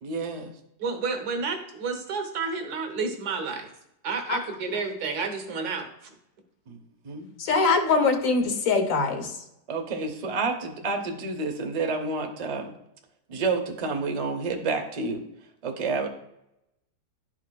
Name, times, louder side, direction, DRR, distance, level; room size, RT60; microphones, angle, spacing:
voice 1, 0.0-0.4 6.7-6.8 7.0-7.3 9.7-12.7 13.3-15.2 15.6-16.1, right 3 dB, 40° right, 3 dB, 0.5 m, -29 dB
voice 2, 0.8-3.7 4.0-6.1, right 4 dB, 70° right, 5 dB, 1.5 m, -30 dB
voice 3, 7.4-9.4, left 4 dB, 60° left, 5 dB, 1.2 m, -23 dB
11.5 x 4.6 x 2.2 m, 0.82 s
omnidirectional pair, 1.7 m